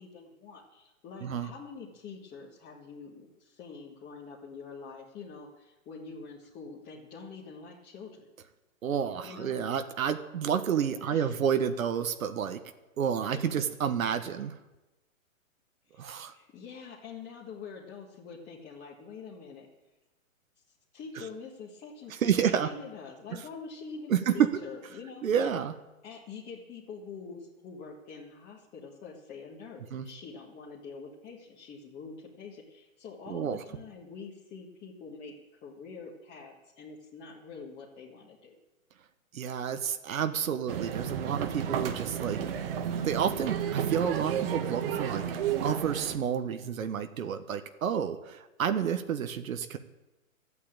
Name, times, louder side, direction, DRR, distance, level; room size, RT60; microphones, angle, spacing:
voice 1, 0.0-8.3 9.2-9.6 11.1-11.4 13.3-13.5 15.9-19.7 20.9-25.2 26.0-35.3 35.6-38.5, left 5 dB, 20° left, -4 dB, 1.7 m, -45 dB
voice 2, 8.8-12.6 13.0-14.5 16.0-16.3 21.2-21.3 22.1-22.7 23.3-23.4 24.1-24.5 25.2-25.7 29.9-30.1 33.3-33.6 39.3-42.4 43.0-45.2 45.6-49.8, right 8 dB, 75° right, 8 dB, 1.3 m, -30 dB
sound 1, 40.7-46.2, right 8 dB, 40° right, 1.4 m, -32 dB
13.5 x 8.6 x 8.8 m, 1.1 s
hypercardioid pair, 150°, 42 cm